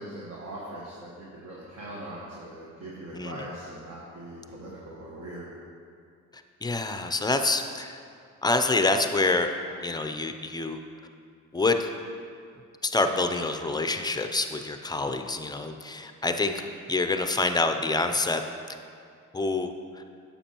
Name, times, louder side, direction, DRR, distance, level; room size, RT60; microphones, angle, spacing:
voice 1, 0.0-5.4, right 1 dB, 55° right, -5 dB, 1.4 m, -41 dB
voice 2, 3.1-3.5 6.6-8.0 8.4-9.5 9.8-10.8 11.5-11.9 12.8-16.6 16.9-18.4 19.3-19.7, left 3 dB, 15° left, 7 dB, 0.5 m, -26 dB
9.7 x 7.0 x 2.9 m, 2.3 s
cardioid pair, 90°, 30 cm